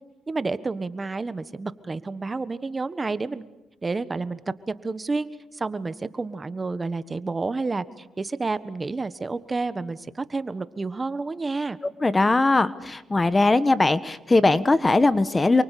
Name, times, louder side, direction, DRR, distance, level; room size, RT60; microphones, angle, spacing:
voice 1, 0.3-3.4 3.8-4.4 4.7-5.3 5.5-11.8, right 3 dB, 25° right, 14 dB, 1.4 m, -30 dB
voice 2, 12.0-15.6, left 2 dB, 20° left, 14 dB, 1.3 m, -20 dB
28.5 x 24.0 x 8.4 m, 0.96 s
cardioid pair, 90°, 0 cm